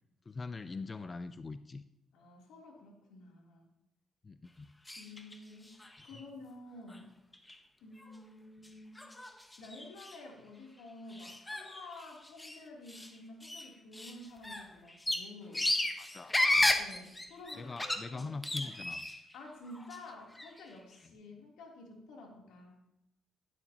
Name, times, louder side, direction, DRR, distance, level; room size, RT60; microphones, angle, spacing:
voice 1, 0.3-1.8 4.2-4.7 16.0-16.4 17.6-19.1 21.0-21.1, left 3 dB, 30° left, 11 dB, 0.6 m, -42 dB
voice 2, 2.1-3.7 5.0-7.1 7.8-9.1 9.6-15.7 16.8-17.8 18.1-18.3 18.5-18.8 19.3-22.7, left 2 dB, 90° left, -1 dB, 3.3 m, -51 dB
sound 1, 4.9-5.4 5.7-6.2 6.9-7.0 7.3-7.6 8.0-8.1 8.6-8.7 9.0-10.2 11.1-12.6 12.9-13.1 13.4-19.3 19.7-20.6, left 1 dB, 15° left, 1.3 m, -34 dB
16.0 x 12.0 x 3.0 m, 0.84 s
cardioid pair, 90°, 0 cm